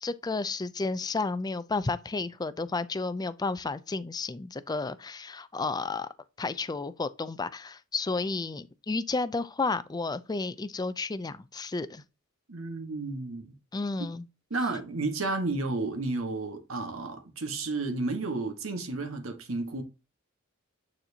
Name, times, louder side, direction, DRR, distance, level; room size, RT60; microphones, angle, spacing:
voice 1, 0.0-6.1 6.4-12.0 13.7-14.3, left 3 dB, 20° left, 0.4 m, -32 dB
voice 2, 12.5-13.5 14.5-19.8, right 3 dB, 70° right, 1.3 m, -32 dB
9.1 x 4.3 x 2.7 m
head